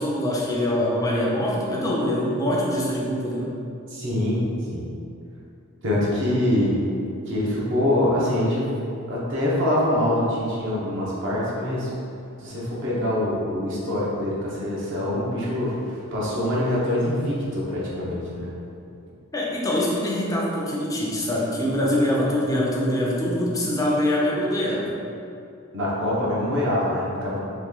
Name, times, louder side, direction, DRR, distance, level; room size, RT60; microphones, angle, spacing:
voice 1, 0.0-3.5 19.3-25.0, left 1 dB, 15° left, -4 dB, 0.5 m, -24 dB
voice 2, 3.9-4.4 4.7-4.9 5.8-6.7 7.3-8.7 9.1-11.9 12.4-18.5 25.7-27.4, left 1 dB, 60° right, -7 dB, 0.9 m, -24 dB
3.0 x 3.0 x 3.7 m, 2.6 s
head